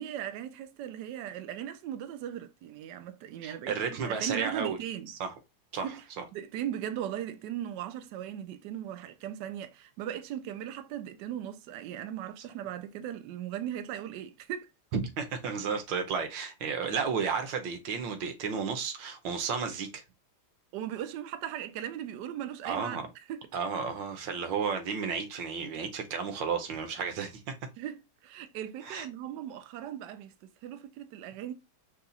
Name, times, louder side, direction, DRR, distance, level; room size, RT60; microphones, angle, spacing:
voice 1, 0.0-5.1 5.8-6.0 6.3-14.7 20.7-23.0 23.3-23.4 27.8-31.5, right 11 dB, 85° right, 0.9 m, -38 dB
voice 2, 3.4-4.8 5.1-5.3 5.7-6.2 14.9-20.0 22.6-23.1 23.5-27.5 28.8-29.1, right 6 dB, 65° right, 1.5 m, -33 dB
5.6 x 2.4 x 4.0 m
omnidirectional pair, 2.4 m